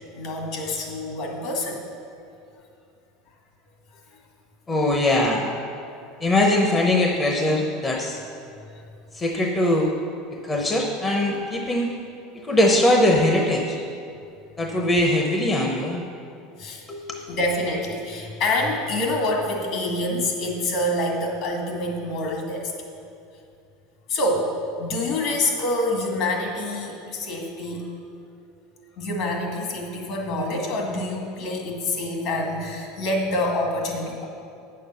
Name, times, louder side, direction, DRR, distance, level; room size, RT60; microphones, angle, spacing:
voice 1, 0.1-1.8 5.9-6.3 16.6-16.9 17.3-22.7 24.1-24.5 24.8-27.9 28.9-34.2, left 1 dB, 60° left, 1 dB, 1.8 m, -26 dB
voice 2, 4.7-5.5 6.2-8.2 9.1-9.9 10.3-12.0 12.3-13.8 14.6-16.0 16.9-17.2, left 1 dB, 20° left, 1 dB, 0.8 m, -21 dB
8.6 x 6.6 x 5.6 m, 2.5 s
supercardioid pair, 125°, 0 cm